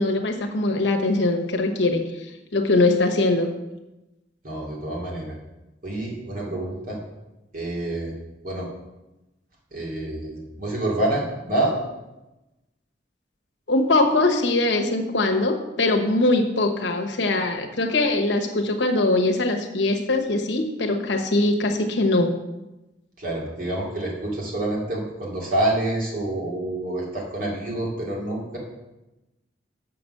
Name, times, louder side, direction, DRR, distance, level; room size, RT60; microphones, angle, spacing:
voice 1, 0.0-2.3 2.5-3.5 13.7-22.3, left 2 dB, 80° left, 3 dB, 1.1 m, -22 dB
voice 2, 4.4-5.3 5.8-7.0 7.5-8.1 8.4-8.7 9.7-11.7 23.2-28.6, right 1 dB, 50° right, -3 dB, 2.5 m, -27 dB
6.9 x 6.0 x 6.5 m, 1.0 s
head